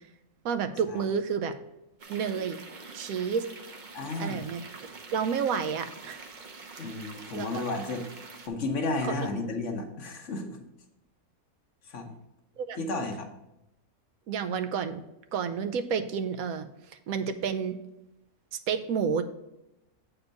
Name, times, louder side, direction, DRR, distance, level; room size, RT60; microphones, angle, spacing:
voice 1, 0.4-1.5 2.1-2.6 2.9-3.5 4.2-6.2 7.3-7.6 12.6-12.8 14.3-15.0 15.3-17.8 18.7-19.2, right 6 dB, 75° right, 9 dB, 1.0 m, -30 dB
sound 1, 2.0-8.5, right 3 dB, 40° right, 0.8 m, -46 dB
voice 2, 3.9-4.5 6.8-8.1 8.4-10.6 11.9-12.1 12.8-13.3, left 3 dB, 60° left, 4 dB, 1.2 m, -32 dB
8.0 x 4.4 x 5.2 m, 0.88 s
omnidirectional pair, 1.5 m